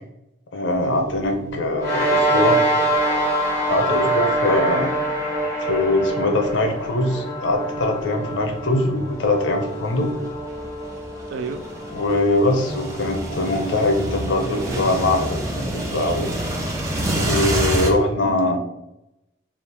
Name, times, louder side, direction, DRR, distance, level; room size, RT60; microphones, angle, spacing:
voice 1, 0.5-2.6 3.7-5.0 5.6-10.1 11.9-16.4 17.1-18.6, left 2 dB, 85° left, 4 dB, 0.7 m, -22 dB
sound 1, 1.1-1.3 1.8-1.9 2.9-4.5 5.2-17.9, right 1 dB, 15° right, 0.6 m, -29 dB
voice 2, 1.4-1.7 3.9-4.2 11.3-11.6 18.2-18.6, right 4 dB, 75° right, 8 dB, 0.4 m, -33 dB
sound 2, 1.8-14.5, right 1 dB, 10° left, 1.2 m, -25 dB
sound 3, 2.7-6.9, right 1 dB, 45° right, 1.3 m, -34 dB
3.5 x 2.5 x 4.2 m, 0.87 s
head